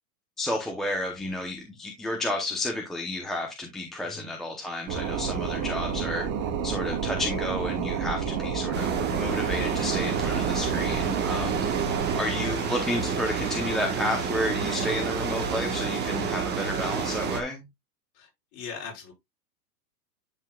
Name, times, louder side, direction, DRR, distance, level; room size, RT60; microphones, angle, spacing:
voice 1, 0.4-6.2 6.6-11.6 12.1-17.6, left 1 dB, ahead, 0.8 m, -31 dB
sound 1, 4.9-12.2, right 7 dB, 55° right, 3.1 m, -30 dB
sound 2, 8.7-17.4, right 6 dB, 20° right, 1.4 m, -29 dB
voice 2, 11.8-12.2 18.1-19.1, left 6 dB, 35° left, 5.5 m, -41 dB
11.0 x 5.7 x 2.4 m
supercardioid pair, 155°, 49 cm